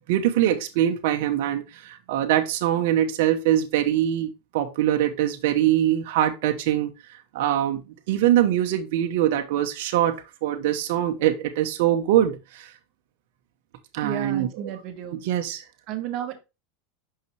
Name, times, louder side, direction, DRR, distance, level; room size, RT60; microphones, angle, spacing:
voice 1, 0.1-7.8 8.1-12.7 13.9-14.5 15.1-15.6, right 12 dB, 65° right, 0.9 m, -23 dB
voice 2, 14.0-15.2 15.9-16.4, right 9 dB, 45° right, 1.4 m, -32 dB
5.8 x 5.5 x 3.2 m
supercardioid pair, 145°, 0 cm